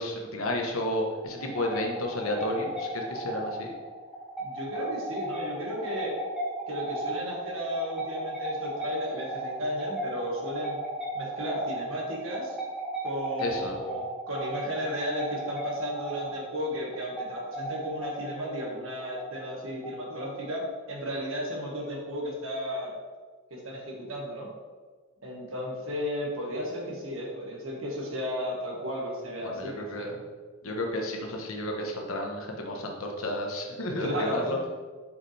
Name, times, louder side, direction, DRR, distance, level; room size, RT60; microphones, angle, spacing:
voice 1, 0.0-3.7 13.4-13.8 29.4-30.2 30.6-34.6, left 1 dB, 75° left, 1 dB, 1.1 m, -32 dB
sound 1, 1.2-20.6, right 1 dB, 5° right, 1.3 m, -36 dB
voice 2, 4.4-6.1 6.7-10.8 11.1-12.6 13.0-22.9 23.5-24.5 25.2-30.1 34.0-34.7, equal, 65° right, -2 dB, 1.7 m, -34 dB
7.1 x 5.4 x 3.4 m, 1.4 s
head